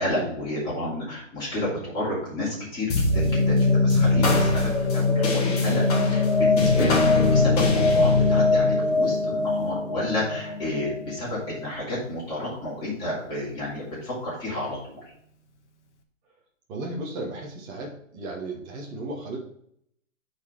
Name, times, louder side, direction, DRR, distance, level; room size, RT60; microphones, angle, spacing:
voice 1, 0.0-15.0, left 1 dB, 10° left, -8 dB, 2.9 m, -31 dB
sound 1, 2.9-11.6, left 3 dB, 30° left, 1.7 m, -21 dB
Acoustic guitar / Strum, 6.8-12.0, left 3 dB, 60° left, 1.2 m, -32 dB
voice 2, 16.7-19.4, right 2 dB, 10° right, -1 dB, 0.9 m, -35 dB
9.3 x 4.3 x 4.4 m, 0.69 s
hypercardioid pair, 165°, 40 cm